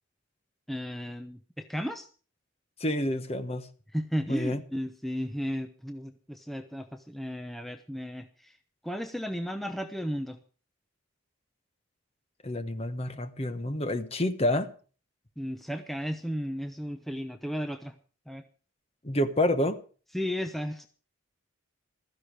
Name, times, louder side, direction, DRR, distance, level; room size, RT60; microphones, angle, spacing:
voice 1, 0.7-2.1 3.9-8.6 8.8-10.4 15.4-17.9 18.3-18.4 20.1-20.9, equal, ahead, 0.7 m, -34 dB
voice 2, 2.8-3.7 4.3-4.6 12.4-14.7 19.0-19.8, left 1 dB, 30° left, 1.1 m, -28 dB
15.5 x 13.5 x 4.8 m
head